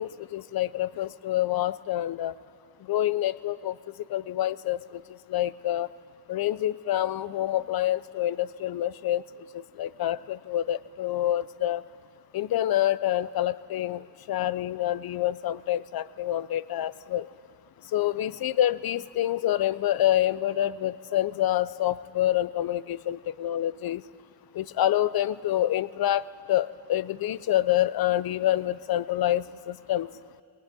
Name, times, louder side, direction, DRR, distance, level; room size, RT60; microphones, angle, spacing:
voice 1, 0.0-2.3 2.9-3.7 4.1-4.8 5.3-5.9 6.3-9.2 9.8-11.8 12.3-14.0 14.3-17.3 17.9-24.0 24.6-30.1, left 13 dB, 55° left, 18 dB, 0.6 m, -27 dB
20.0 x 20.0 x 9.9 m, 2.4 s
wide cardioid pair, 140°, 44 cm